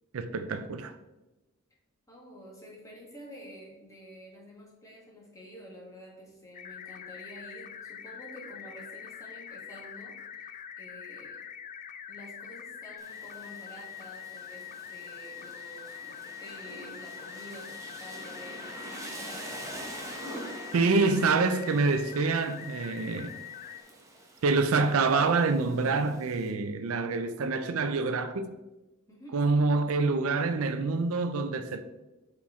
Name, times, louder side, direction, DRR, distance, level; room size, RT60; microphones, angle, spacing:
voice 1, 0.1-0.9 20.7-23.4 24.4-28.5 29.3-31.8, right 4 dB, 80° right, 0.5 m, -26 dB
voice 2, 2.1-11.4 12.1-19.8 29.1-29.4, equal, 15° left, 1.5 m, -49 dB
sound 1, 6.5-23.8, left 9 dB, 35° left, 0.3 m, -44 dB
Rain, 13.0-26.5, right 1 dB, 15° right, 0.8 m, -46 dB
6.1 x 4.4 x 3.6 m
head